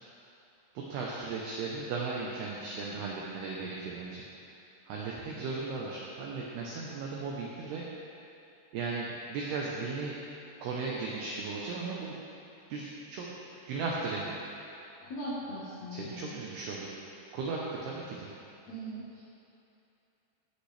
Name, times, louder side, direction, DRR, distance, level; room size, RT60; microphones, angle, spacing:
voice 1, 0.7-4.2 4.9-7.8 8.7-10.2 10.6-12.2 12.7-13.4 13.7-14.4 15.9-16.9 17.3-18.3, right 4 dB, 75° right, -3 dB, 2.5 m, -36 dB
voice 2, 15.0-16.3 18.7-19.2, equal, 70° left, -9 dB, 1.6 m, -39 dB
16.5 x 8.2 x 3.4 m, 2.8 s
omnidirectional pair, 5.6 m